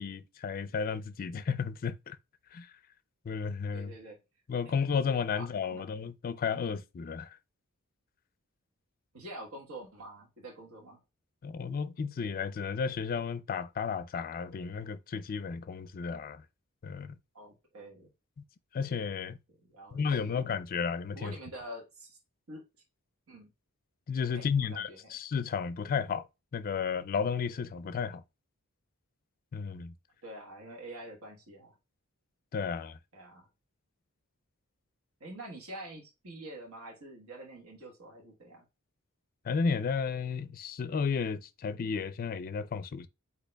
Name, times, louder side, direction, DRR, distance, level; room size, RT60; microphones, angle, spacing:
voice 1, 0.0-2.2 2.5-2.7 3.3-3.9 4.5-7.4 11.4-16.4 16.8-17.2 18.7-19.4 19.9-21.3 24.1-26.3 26.5-28.2 29.5-29.9 32.5-33.0 39.4-43.1, left 6 dB, 40° left, 0.4 m, -33 dB
voice 2, 3.7-4.2 4.6-4.7 5.3-5.8 9.1-11.0 17.3-18.1 19.6-20.4 21.1-22.2 22.5-22.6 23.3-23.5 24.3-25.1 30.2-31.7 33.1-33.5 35.2-38.6, right 1 dB, 70° right, 1.3 m, -46 dB
8.2 x 2.8 x 2.2 m
head